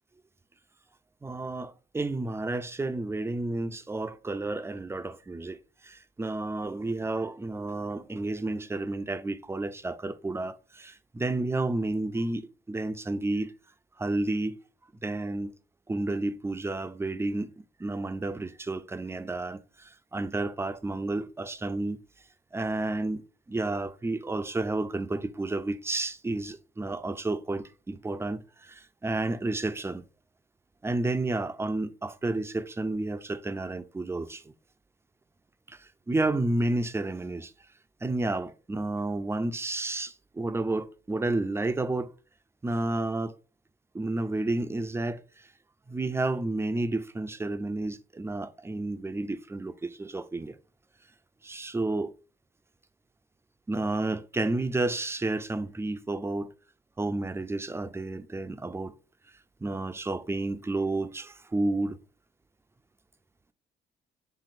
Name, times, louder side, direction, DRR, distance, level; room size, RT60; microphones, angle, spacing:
voice 1, 1.2-5.6 5.8-13.5 14.0-14.6 15.0-15.5 15.9-17.5 17.8-22.0 22.5-23.2 23.5-30.0 30.8-34.5 35.7-37.5 38.0-42.1 42.6-43.3 43.9-45.5 45.9-50.6 51.4-52.1 53.7-56.5 57.0-58.9 59.6-62.0, right 2 dB, 15° right, 0.4 m, -31 dB
5.9 x 3.5 x 2.5 m
cardioid pair, 90°, 20 cm